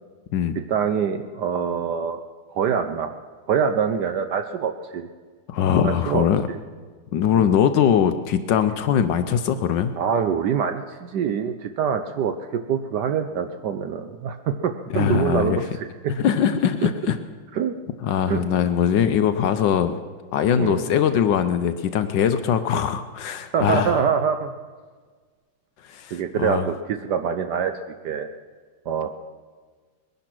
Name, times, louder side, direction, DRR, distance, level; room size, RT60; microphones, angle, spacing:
voice 1, 0.6-2.2 2.5-3.1 3.5-5.1 5.8-6.6 7.3-7.5 10.0-15.6 17.5-17.7 18.3-18.4 20.6-20.8 23.5-24.5 26.1-27.7 28.0-28.3 28.9-29.1, right 7 dB, 70° right, 7 dB, 1.0 m, -25 dB
voice 2, 5.5-6.4 7.1-9.9 14.9-15.6 16.2-17.2 18.0-20.0 20.3-24.0 25.8-26.7, left 8 dB, 70° left, 10 dB, 1.2 m, -21 dB
21.0 x 10.5 x 6.0 m, 1.5 s
omnidirectional pair, 2.3 m